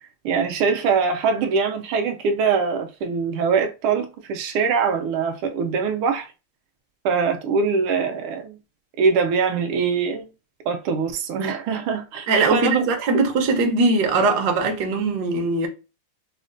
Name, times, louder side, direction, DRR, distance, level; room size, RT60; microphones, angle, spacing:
voice 1, 0.2-6.3 7.0-8.6 9.0-10.3 10.7-12.8, right 5 dB, 80° right, 1.4 m, -23 dB
voice 2, 12.3-15.7, right 3 dB, 65° right, 1.1 m, -20 dB
5.1 x 2.1 x 2.5 m
omnidirectional pair, 2.3 m